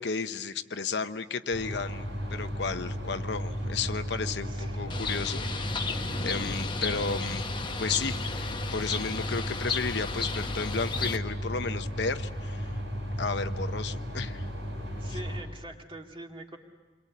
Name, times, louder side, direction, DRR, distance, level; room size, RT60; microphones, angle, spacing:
voice 1, 0.0-5.8 6.2-7.4 7.8-12.8 13.2-14.5, left 4 dB, 70° left, 9 dB, 0.8 m, -33 dB
sound 1, 1.5-15.4, equal, 90° right, 6.4 m, -35 dB
voice 2, 4.5-5.0 15.0-16.6, right 1 dB, 30° right, 1 dB, 2.4 m, -44 dB
Bird, 4.9-11.2, left 5 dB, 25° left, 1.0 m, -34 dB
28.0 x 22.5 x 8.4 m, 1.3 s
head